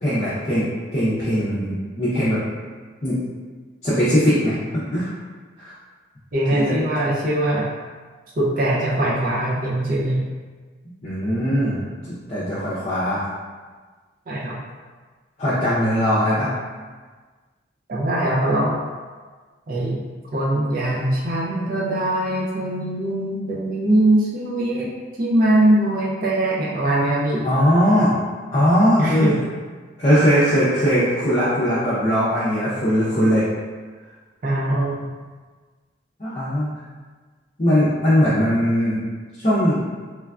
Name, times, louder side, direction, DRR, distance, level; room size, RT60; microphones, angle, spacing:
voice 1, 0.0-2.4 3.0-3.2 3.8-5.1 5.6-5.7 6.5-6.8 11.0-11.8 12.3-13.2 15.4-16.5 27.4-28.1 28.5-29.4 30.0-33.4 36.2-36.7 37.6-39.0 39.4-39.8, equal, 35° left, -12 dB, 0.5 m, -19 dB
voice 2, 6.3-7.7 8.4-10.2 14.3-14.6 17.9-18.8 19.7-20.0 20.3-24.9 25.2-27.5 29.0-29.4 34.4-35.1, right 1 dB, 45° right, -4 dB, 0.4 m, -21 dB
3.1 x 2.3 x 2.3 m, 1.4 s
head